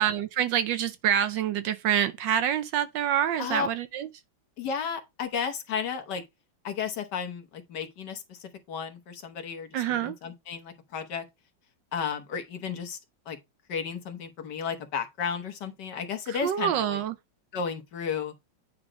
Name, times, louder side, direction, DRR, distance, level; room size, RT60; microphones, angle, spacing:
voice 1, 0.0-4.1 9.7-10.2 16.3-17.1, right 10 dB, 75° right, 1.2 m, -26 dB
voice 2, 4.6-6.2 6.6-11.2 11.9-13.0 13.3-13.4 13.7-17.0 17.5-18.3, left 6 dB, 60° left, 1.6 m, -33 dB
8.8 x 3.0 x 5.0 m
omnidirectional pair, 2.2 m